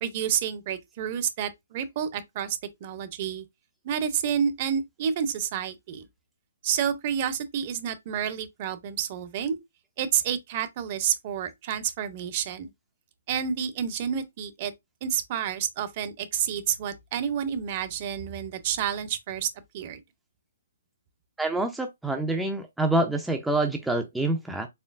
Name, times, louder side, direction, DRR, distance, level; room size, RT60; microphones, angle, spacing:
voice 1, 0.0-3.4 3.8-6.1 6.6-9.6 10.0-12.7 13.3-14.7 15.0-20.0, right 8 dB, 40° right, 0.8 m, -29 dB
voice 2, 21.4-24.7, right 2 dB, 5° right, 0.5 m, -26 dB
4.4 x 3.1 x 2.4 m
hypercardioid pair, 140°, 0 cm